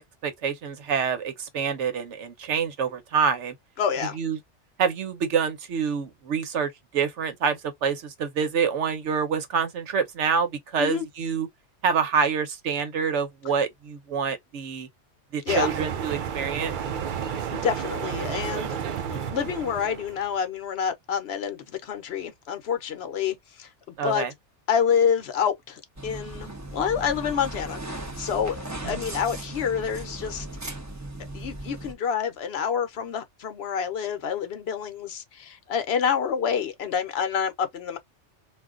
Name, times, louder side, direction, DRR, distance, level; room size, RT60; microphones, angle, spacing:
voice 1, 0.0-3.5 4.2-4.4 4.8-11.5 11.8-14.9 15.3-16.7 24.0-24.3 28.8-29.0, right 6 dB, 80° right, 1.1 m, -27 dB
voice 2, 3.8-4.2 10.8-11.1 15.5-15.7 17.2-18.8 19.1-23.7 24.0-24.3 24.7-30.5 31.3-38.0, left 7 dB, 65° left, 0.9 m, -28 dB
sound 1, 15.5-20.3, right 8 dB, 60° right, 0.5 m, -31 dB
sound 2, 26.0-31.9, right 1 dB, 20° right, 0.6 m, -37 dB
2.5 x 2.2 x 3.6 m
omnidirectional pair, 1.2 m